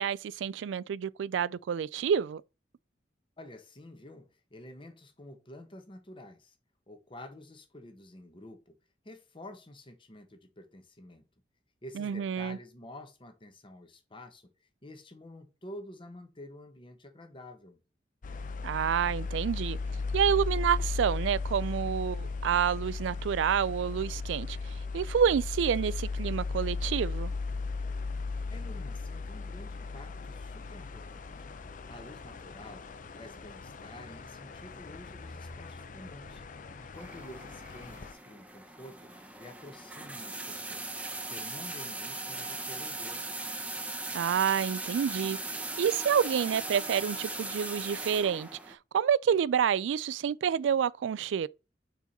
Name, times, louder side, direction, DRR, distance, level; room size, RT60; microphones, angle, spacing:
voice 1, 0.0-2.4 12.0-12.6 18.6-19.8 20.1-24.6 24.9-27.3 44.1-45.4 45.8-51.5, right 8 dB, 80° right, 0.3 m, -28 dB
voice 2, 3.4-6.6 6.9-8.8 9.0-11.3 11.8-17.8 28.5-31.5 31.9-32.9 33.1-36.4 36.8-39.1 39.4-40.9 41.3-43.2, left 1 dB, 30° left, 1.0 m, -49 dB
sound 1, 18.2-38.1, left 4 dB, 45° left, 0.6 m, -36 dB
sound 2, 36.9-48.7, right 2 dB, 5° right, 0.7 m, -39 dB
4.6 x 4.3 x 5.2 m
head